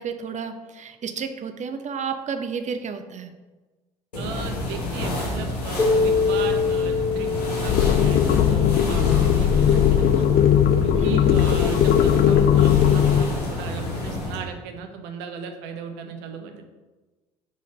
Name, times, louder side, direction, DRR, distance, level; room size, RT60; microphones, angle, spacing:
voice 1, 0.0-3.3 11.0-11.4, right 6 dB, 35° right, 8 dB, 0.8 m, -31 dB
sound 1, 4.1-14.4, left 1 dB, 80° left, 1.4 m, -30 dB
voice 2, 4.1-10.3 10.8-16.7, right 6 dB, 60° right, 5 dB, 1.0 m, -36 dB
Keyboard (musical), 5.8-9.0, left 4 dB, 25° left, 1.4 m, -24 dB
sound 2, 7.7-13.2, left 9 dB, 50° left, 0.6 m, -18 dB
6.5 x 4.1 x 5.3 m, 1.2 s
figure-of-eight pair, 55°, 20 cm